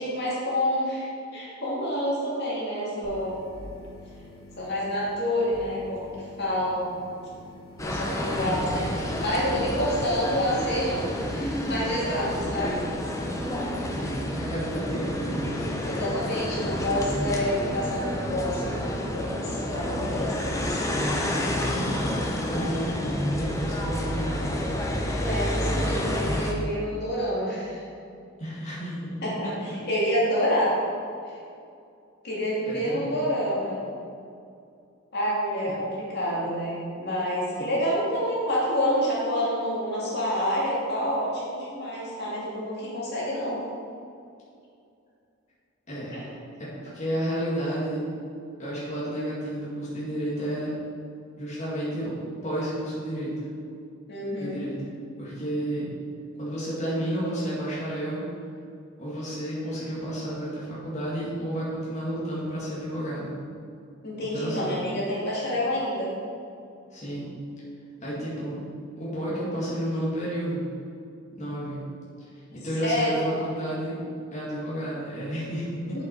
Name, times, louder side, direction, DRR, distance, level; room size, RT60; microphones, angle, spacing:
voice 1, 0.0-3.4 4.6-7.0 7.8-11.0 11.3-12.8 15.8-21.0 25.2-27.8 29.2-30.7 31.3-31.4 32.2-33.8 35.1-43.6 46.1-46.3 54.1-54.6 64.0-66.1 72.8-73.2 75.8-76.0, equal, 55° left, -6 dB, 2.4 m, -28 dB
sound 1, 3.0-14.0, left 2 dB, 85° left, 1.9 m, -48 dB
sound 2, 7.8-26.5, left 1 dB, 15° left, 0.9 m, -29 dB
voice 2, 14.0-15.7 21.8-24.6 28.4-29.1 32.7-33.2 45.9-46.3 46.6-48.1 48.6-50.7 51.4-53.3 54.4-55.9 56.4-58.3 59.0-63.3 64.3-64.8 66.9-67.3 68.0-68.6 69.0-70.7 71.3-71.8 72.5-74.0 74.3-76.0, right 1 dB, 35° left, -8 dB, 2.3 m, -31 dB
8.1 x 7.5 x 4.8 m, 2.4 s
head